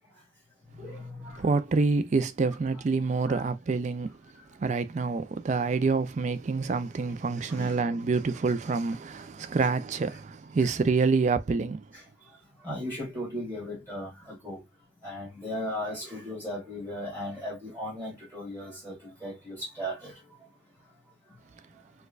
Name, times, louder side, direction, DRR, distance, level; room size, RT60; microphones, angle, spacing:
voice 1, 0.7-1.6 3.2-3.4 7.4-7.9 11.9-12.0 12.6-14.6 15.0-20.2, equal, 15° right, 1.7 m, -37 dB
voice 2, 1.4-4.2 4.6-11.8, right 4 dB, 40° right, 0.4 m, -27 dB
4.4 x 2.2 x 2.3 m
head